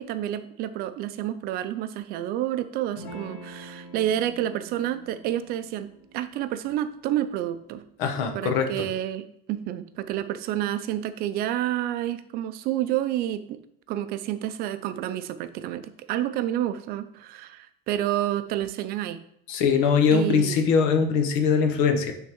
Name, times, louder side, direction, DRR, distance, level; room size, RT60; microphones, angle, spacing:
voice 1, 0.0-7.8 8.3-13.6 13.9-19.2 20.1-20.6, right 12 dB, 50° right, 11 dB, 0.4 m, -29 dB
Electric guitar / Strum, 3.0-8.1, right 1 dB, 65° left, 1.8 m, -46 dB
voice 2, 8.0-8.9 19.5-22.1, left 6 dB, 85° left, 6 dB, 1.0 m, -22 dB
9.3 x 3.7 x 3.0 m, 0.74 s
cardioid pair, 170°, 20 cm